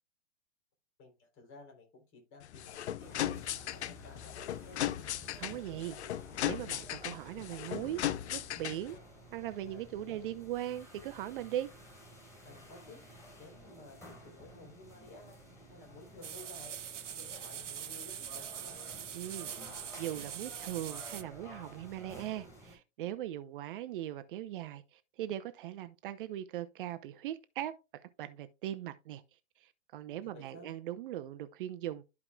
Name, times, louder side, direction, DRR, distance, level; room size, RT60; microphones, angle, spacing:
voice 1, 1.0-3.4 3.7-4.8 9.7-10.2 12.4-13.0 13.4-15.4 15.7-16.8 17.1-18.8 30.2-30.7, left 3 dB, 35° left, 3.3 m, -54 dB
sound 1, 2.4-9.0, left 12 dB, 65° left, 0.6 m, -37 dB
sound 2, 3.0-22.8, equal, 10° left, 4.0 m, -53 dB
voice 2, 5.4-6.0 6.4-8.0 8.3-9.0 9.3-11.7 19.1-19.5 20.0-27.7 28.0-29.2 29.6-32.0, right 12 dB, 45° right, 0.6 m, -39 dB
sound 3, 16.2-21.2, right 9 dB, 85° right, 0.8 m, -43 dB
13.0 x 4.8 x 2.3 m
hypercardioid pair, 120°, 36 cm